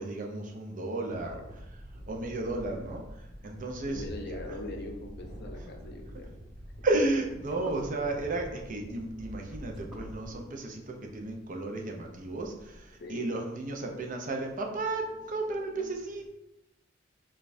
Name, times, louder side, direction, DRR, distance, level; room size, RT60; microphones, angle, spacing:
voice 1, 0.0-1.6 2.1-4.4 6.8-16.3, right 2 dB, 45° right, 2 dB, 0.5 m, -33 dB
sound 1, 1.1-10.4, equal, 75° right, 1.0 m, -45 dB
voice 2, 3.8-6.3 13.0-13.3, left 2 dB, 60° left, 3 dB, 0.6 m, -41 dB
sound 2, 6.0-13.0, equal, 5° right, 0.9 m, -54 dB
5.0 x 2.3 x 2.6 m, 0.91 s
head